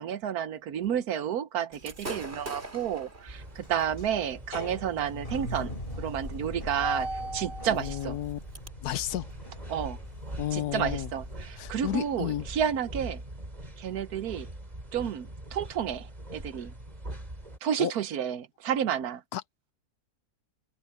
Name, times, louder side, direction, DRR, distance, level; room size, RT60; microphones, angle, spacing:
voice 1, 0.0-8.2 9.7-10.0 10.5-13.2 13.8-14.5 14.9-16.7 17.6-19.2, right 9 dB, 75° right, 1.3 m, -31 dB
Gunshot gunfire / Fireworks, 1.7-8.7, right 2 dB, 40° right, 3.6 m, -46 dB
sound 1, 1.9-2.4 2.9-3.0 3.4-11.8, equal, 35° left, 4.6 m, -40 dB
sound 2, 3.3-17.6, right 1 dB, 25° right, 4.1 m, -43 dB
voice 2, 7.7-8.4 8.8-9.3 10.4-11.1 11.6-12.5 17.8-17.9 19.3-19.4, left 12 dB, 75° left, 1.2 m, -32 dB
open air
omnidirectional pair, 1.7 m